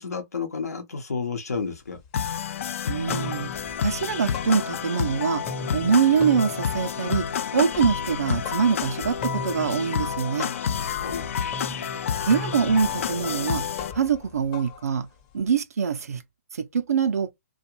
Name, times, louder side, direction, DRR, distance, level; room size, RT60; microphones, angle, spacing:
voice 1, 0.0-2.0 10.9-11.6, left 5 dB, 80° left, 0.8 m, -32 dB
sound 1, 1.5-1.6 2.0-2.6 2.9-5.1 5.4-15.5, left 3 dB, 30° left, 0.7 m, -39 dB
sound 2, 2.1-13.9, left 7 dB, 55° left, 0.3 m, -29 dB
voice 2, 2.9-3.5 3.8-5.4 5.7-7.3 7.5-10.5 12.3-13.6 13.9-15.1 15.3-16.2 16.5-17.3, right 6 dB, 75° right, 0.5 m, -24 dB
2.4 x 2.2 x 2.9 m
hypercardioid pair, 140°, 8 cm